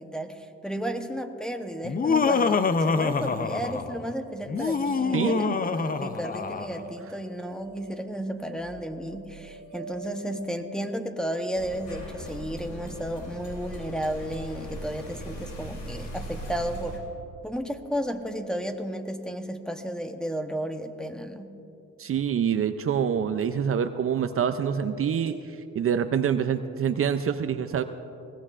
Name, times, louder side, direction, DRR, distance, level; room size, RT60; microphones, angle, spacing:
voice 1, 0.0-17.1 17.4-21.5, equal, ahead, 4 dB, 0.9 m, -33 dB
Laughter, 1.8-4.0 4.5-6.8, left 4 dB, 30° left, 0.6 m, -25 dB
sound 1, 3.9-13.1, right 1 dB, 80° right, 1.8 m, -46 dB
voice 2, 5.1-5.6 22.0-25.4 25.7-27.8, right 8 dB, 45° right, 9 dB, 0.5 m, -26 dB
sound 2, 11.5-17.0, equal, 75° left, 3.3 m, -39 dB
21.0 x 17.0 x 2.5 m, 2.9 s
cardioid pair, 90°, 30 cm